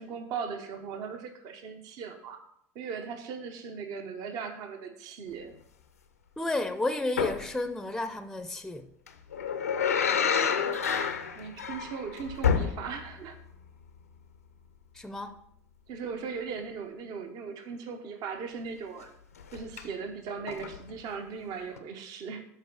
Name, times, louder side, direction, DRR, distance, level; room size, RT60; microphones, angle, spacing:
voice 1, 0.0-2.4 2.7-5.5 11.3-13.4 15.9-19.1 19.5-22.4, right 5 dB, 50° right, 1.0 m, -38 dB
voice 2, 6.4-8.9 14.9-15.4, left 2 dB, 5° left, 0.6 m, -32 dB
sound 1, 7.2-7.5 9.1-13.2 13.5-13.6 19.4-19.8 20.5-20.9 21.8-21.9, left 7 dB, 85° left, 0.7 m, -29 dB
12.0 x 4.6 x 3.9 m
hypercardioid pair, 80°, 8 cm